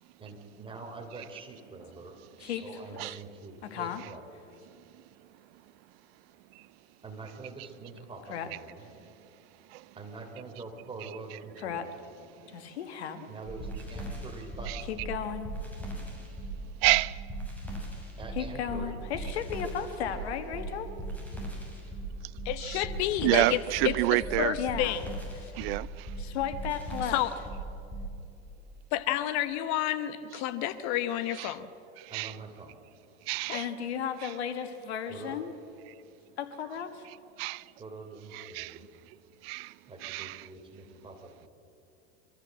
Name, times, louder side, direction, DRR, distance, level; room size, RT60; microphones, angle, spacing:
voice 1, 0.2-4.2 7.0-8.8 10.0-11.9 13.3-15.0 18.2-19.0 32.1-32.8 35.1-35.4 37.8-38.9 39.9-41.5, right 3 dB, 15° right, 3.6 m, -45 dB
voice 2, 2.4-3.2 3.6-4.0 8.3-8.5 11.6-11.9 12.5-13.3 14.9-15.5 18.4-20.9 24.6-25.0 26.2-27.2 33.5-35.6 36.4-37.1, left 8 dB, 90° left, 1.9 m, -35 dB
sound 1, 13.4-28.1, right 2 dB, 5° left, 6.7 m, -38 dB
voice 3, 16.8-17.2 22.6-22.8 23.2-24.5 25.5-26.1 31.4-31.5 32.0-32.3 33.3-33.7 34.2-34.3 37.4-37.6 38.3-38.8 39.4-39.7 40.0-40.4, right 21 dB, 70° right, 0.5 m, -29 dB
voice 4, 22.4-23.6 23.8-25.0 27.1-27.3 28.9-31.7 33.5-33.6, left 12 dB, 60° left, 1.3 m, -30 dB
24.0 x 14.0 x 7.8 m
supercardioid pair, 110°, 32 cm